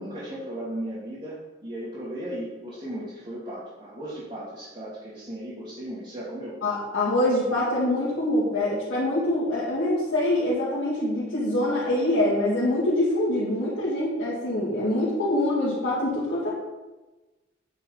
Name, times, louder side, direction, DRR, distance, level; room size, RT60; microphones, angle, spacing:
voice 1, 0.0-6.6, right 1 dB, 40° right, -11 dB, 2.8 m, -36 dB
voice 2, 6.6-16.5, left 1 dB, 75° left, -9 dB, 2.3 m, -24 dB
9.1 x 5.8 x 4.1 m, 1.1 s
head